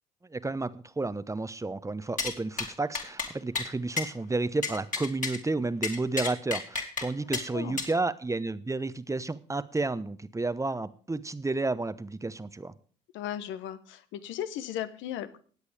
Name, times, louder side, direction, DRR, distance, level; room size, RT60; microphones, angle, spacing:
voice 1, 0.3-12.7, right 3 dB, 15° right, 14 dB, 0.9 m, -31 dB
sound 1, 2.2-2.3 2.6-2.7 2.9-3.3 3.6-3.7 4.0-4.1 4.6-5.4 5.8-7.1 7.3-7.4 7.8-7.9, left 4 dB, 40° left, 2.9 m, -31 dB
voice 2, 7.3-7.8 13.1-15.4, left 11 dB, 65° left, 13 dB, 1.1 m, -36 dB
18.5 x 8.1 x 3.5 m, 0.43 s
hypercardioid pair, 55°, 21 cm